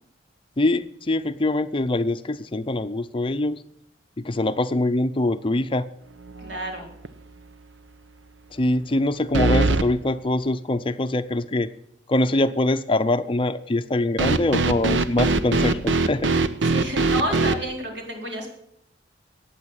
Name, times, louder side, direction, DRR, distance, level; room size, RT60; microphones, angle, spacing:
voice 1, 0.6-3.6 4.2-5.9 8.5-11.7 12.1-16.3, left 2 dB, 30° left, 11 dB, 0.5 m, -23 dB
sound 1, 6.3-6.7 7.0-7.1 9.3-9.9 14.2-17.6, right 3 dB, 85° right, 0.9 m, -21 dB
voice 2, 6.4-6.9 16.6-18.5, equal, 65° right, 2 dB, 4.2 m, -30 dB
15.0 x 9.1 x 8.9 m, 0.74 s
head